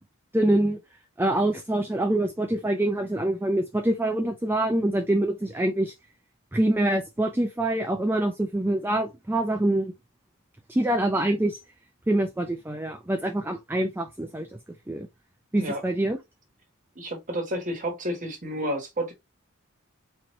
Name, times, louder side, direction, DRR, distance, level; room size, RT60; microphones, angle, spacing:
voice 1, 0.3-0.8 1.2-5.9 6.5-9.9 10.7-11.6 12.1-14.5 14.9-15.1 15.5-16.2, right 1 dB, 10° right, 0.5 m, -25 dB
voice 2, 16.9-19.1, equal, 35° right, 1.5 m, -30 dB
4.3 x 3.0 x 3.1 m
head